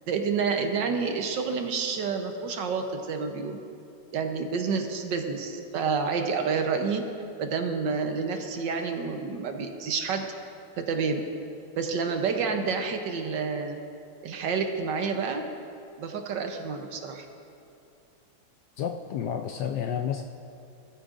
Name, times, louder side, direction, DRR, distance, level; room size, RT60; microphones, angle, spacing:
voice 1, 0.1-3.6 4.1-7.0 7.4-10.3 10.8-11.2 11.8-13.8 14.2-15.4 16.0-17.3, right 5 dB, 65° right, 5 dB, 1.4 m, -29 dB
voice 2, 18.8-20.2, left 8 dB, 75° left, 5 dB, 1.0 m, -30 dB
17.5 x 14.0 x 2.5 m, 2.7 s
omnidirectional pair, 2.2 m